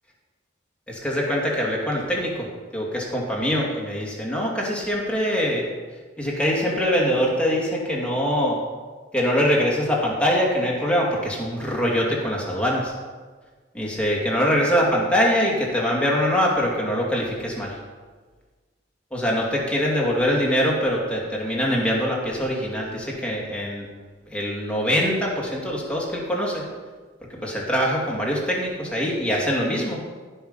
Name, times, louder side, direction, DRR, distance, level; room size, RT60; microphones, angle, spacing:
voice 1, 0.9-2.5 2.7-5.6 6.2-8.6 9.1-12.9 13.7-17.8 19.1-23.9 24.3-26.6 27.4-30.0, equal, 5° left, -3 dB, 2.4 m, -23 dB
16.5 x 5.7 x 5.6 m, 1.4 s
head